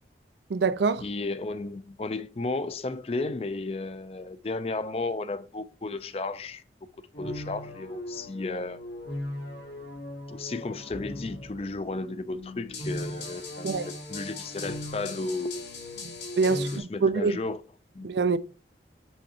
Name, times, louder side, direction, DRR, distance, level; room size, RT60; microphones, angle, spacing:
voice 1, 0.5-1.0 13.6-13.9 16.0-16.7 17.0-17.4 18.0-18.4, right 4 dB, 80° right, 0.4 m, -25 dB
voice 2, 1.0-6.6 7.2-8.8 10.3-13.8 14.1-15.7 16.5-17.6 17.9-18.1, left 3 dB, 35° left, 0.4 m, -33 dB
sound 1, 7.1-16.8, left 1 dB, 85° left, 2.1 m, -38 dB
6.3 x 5.6 x 2.8 m
head